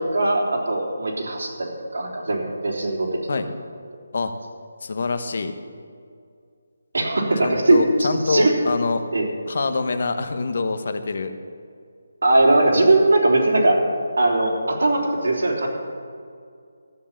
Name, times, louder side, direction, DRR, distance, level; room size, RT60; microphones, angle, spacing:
voice 1, 0.0-3.4 6.9-8.5 9.1-9.2 12.2-13.8 14.2-15.7, right 2 dB, 85° right, -3 dB, 3.2 m, -20 dB
voice 2, 4.8-5.5 7.4-9.0 9.5-11.3, left 3 dB, 50° left, 9 dB, 1.0 m, -25 dB
14.0 x 7.4 x 7.3 m, 2.3 s
hypercardioid pair, 175°, 0 cm